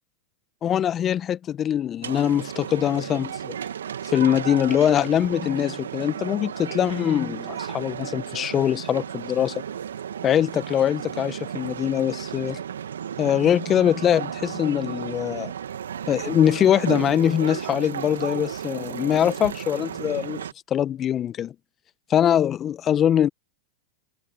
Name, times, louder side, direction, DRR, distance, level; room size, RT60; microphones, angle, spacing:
voice 1, 0.6-3.5 4.1-9.6 10.2-12.6 13.2-15.5 16.1-20.4 20.7-21.5 22.1-23.3, left 10 dB, 30° left, 1.3 m, -23 dB
sound 1, 2.0-20.5, right 8 dB, 80° right, 2.3 m, -34 dB
hypercardioid pair, 100°, 0 cm